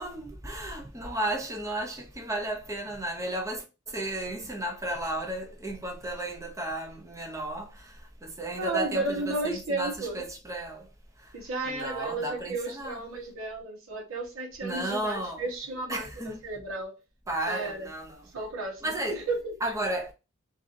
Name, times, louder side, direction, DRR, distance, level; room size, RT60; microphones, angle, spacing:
voice 1, 0.0-10.9 11.2-11.4 11.7-13.0 14.6-15.5 15.9-16.4 17.3-18.3 18.8-19.3 19.6-20.1, right 1 dB, 15° right, 0.6 m, -34 dB
voice 2, 8.6-10.2 11.3-16.9 17.5-17.9 18.3-18.8 19.1-19.5, right 2 dB, 85° right, 0.9 m, -33 dB
2.8 x 2.5 x 2.5 m
head